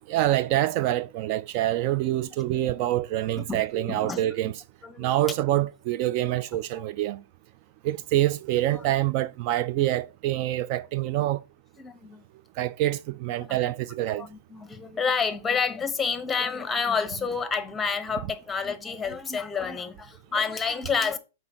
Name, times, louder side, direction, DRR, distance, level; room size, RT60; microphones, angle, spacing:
voice 1, 0.1-4.6 5.0-7.2 7.8-11.4 12.6-14.3, right 14 dB, 50° right, 0.3 m, -26 dB
voice 2, 3.4-4.5 4.8-5.1 8.7-8.8 11.8-12.2 13.4-13.6 14.2-21.2, left 5 dB, 10° left, 1.0 m, -29 dB
5.7 x 4.4 x 6.2 m
hypercardioid pair, 115°, 0 cm